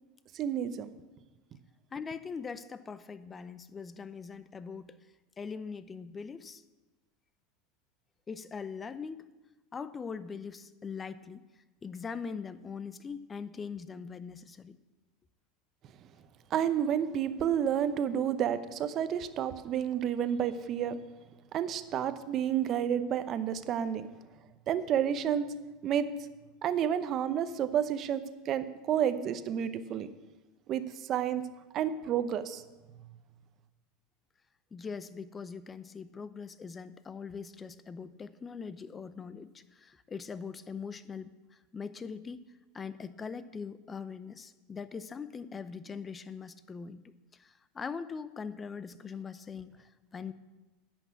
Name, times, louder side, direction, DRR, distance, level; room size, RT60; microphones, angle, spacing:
voice 1, 0.3-0.9 16.5-21.0 21.5-24.1 24.7-25.5 25.8-26.1 26.6-30.1 30.7-31.4 31.7-32.6, right 9 dB, 40° right, 11 dB, 0.8 m, -30 dB
voice 2, 1.9-5.0 5.4-6.6 8.3-9.2 9.7-11.4 11.8-14.8 34.7-42.4 42.7-47.1 47.4-50.3, left 5 dB, 20° left, 14 dB, 0.6 m, -41 dB
11.0 x 6.1 x 8.6 m, 1.2 s
supercardioid pair, 115°, 0 cm